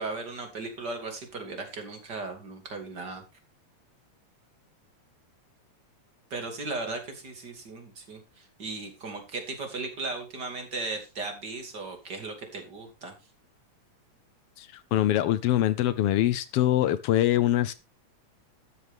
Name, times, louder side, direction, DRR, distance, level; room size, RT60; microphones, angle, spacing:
voice 1, 0.0-3.2 6.3-13.1, right 3 dB, 35° right, 3.0 m, -36 dB
voice 2, 14.6-17.7, left 13 dB, 85° left, 1.3 m, -24 dB
12.5 x 9.5 x 3.5 m
omnidirectional pair, 3.4 m